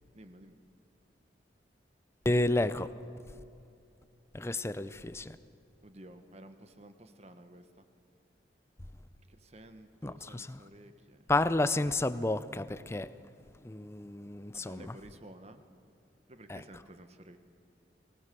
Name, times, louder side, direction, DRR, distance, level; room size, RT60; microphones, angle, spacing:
voice 1, 0.1-0.6 5.8-7.8 9.3-11.3 14.5-15.6 16.3-17.4, right 1 dB, 35° right, 1.2 m, -52 dB
voice 2, 2.2-2.9 4.3-5.4 10.0-10.6 11.3-13.1 13.6-14.9 16.5-16.6, left 2 dB, 15° left, 0.5 m, -31 dB
23.0 x 18.0 x 6.8 m
head